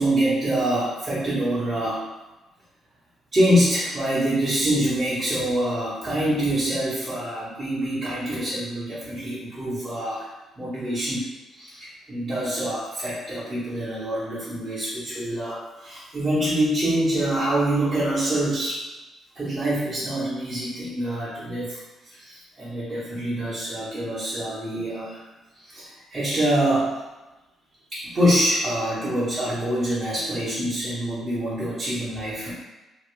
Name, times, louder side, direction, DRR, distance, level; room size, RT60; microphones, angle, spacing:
voice 1, 0.0-2.1 3.3-10.3 10.6-18.8 19.3-25.2 25.6-27.0 27.9-32.5, right 1 dB, 30° right, -13 dB, 1.1 m, -25 dB
2.8 x 2.4 x 3.1 m, 1.1 s
cardioid pair, 90°, 0 cm